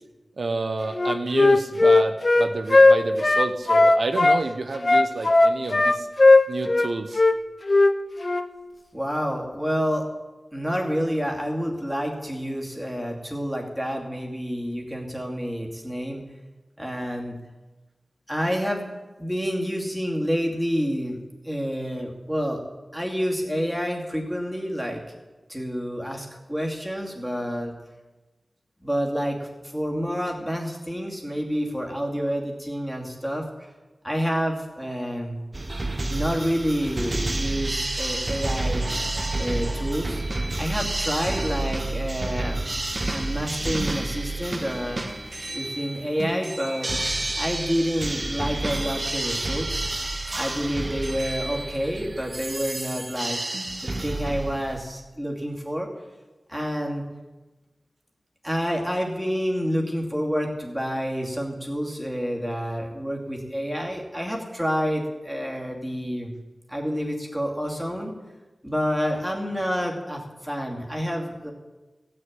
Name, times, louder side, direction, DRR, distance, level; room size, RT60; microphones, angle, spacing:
voice 1, 0.4-6.1 6.5-7.2, right 3 dB, 70° right, 6 dB, 0.9 m, -29 dB
Wind instrument woodwind instrument, 0.9-4.4 4.8-6.9 7.1-7.3 7.7-7.9 8.2-8.4, left 2 dB, 40° left, 0.7 m, -17 dB
voice 2, 8.9-10.0 10.5-16.2 16.8-17.4 18.3-18.8 19.2-21.2 21.4-22.6 22.9-25.0 25.5-27.7 28.8-33.7 34.0-35.4 36.1-38.8 39.4-40.2 40.6-42.6 43.1-45.0 45.5-46.9 47.4-49.9 50.4-53.4 53.8-55.9 56.5-57.0 58.4-66.3 66.7-68.1 68.6-71.5, equal, 5° right, -1 dB, 2.6 m, -28 dB
sound 1, 35.5-54.8, right 2 dB, 35° right, 1.1 m, -29 dB
15.0 x 6.7 x 9.0 m, 1.1 s
wide cardioid pair, 90°, 0 cm